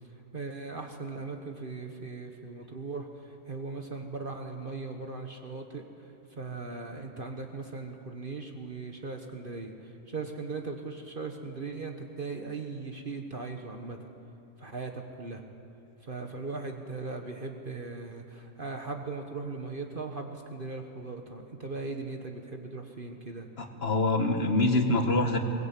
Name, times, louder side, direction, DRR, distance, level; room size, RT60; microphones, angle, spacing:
voice 1, 0.1-14.0 14.6-15.4 16.0-23.5, right 3 dB, 40° right, 3 dB, 1.5 m, -39 dB
voice 2, 23.6-25.4, left 2 dB, 50° left, 4 dB, 2.0 m, -25 dB
22.5 x 19.5 x 8.4 m, 2.7 s
omnidirectional pair, 1.4 m